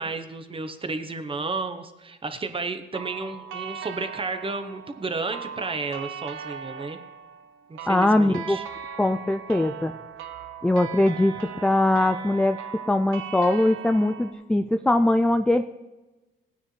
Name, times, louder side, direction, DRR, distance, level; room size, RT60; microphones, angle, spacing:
voice 1, 0.0-7.0 7.7-8.6, right 3 dB, 25° right, 8 dB, 1.0 m, -32 dB
sound 1, 2.9-14.3, right 7 dB, 80° right, 1.0 m, -39 dB
voice 2, 7.9-8.6 9.0-9.9 10.6-12.6 12.9-15.6, left 1 dB, 5° left, 8 dB, 0.3 m, -21 dB
16.0 x 9.5 x 3.3 m, 1.1 s
cardioid pair, 90°, 20 cm